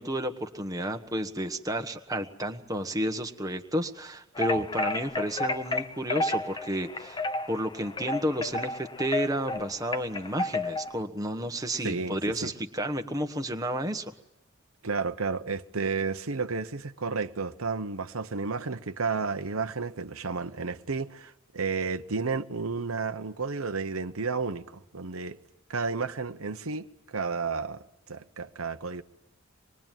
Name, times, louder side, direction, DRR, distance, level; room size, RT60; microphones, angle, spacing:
voice 1, 0.0-14.0, equal, 15° right, 1.3 m, -31 dB
sound 1, 4.4-11.0, left 2 dB, 20° left, 0.9 m, -31 dB
voice 2, 11.8-12.5 14.8-24.6 24.9-25.4 25.7-29.0, right 4 dB, 90° right, 1.0 m, -32 dB
25.0 x 21.5 x 9.2 m
head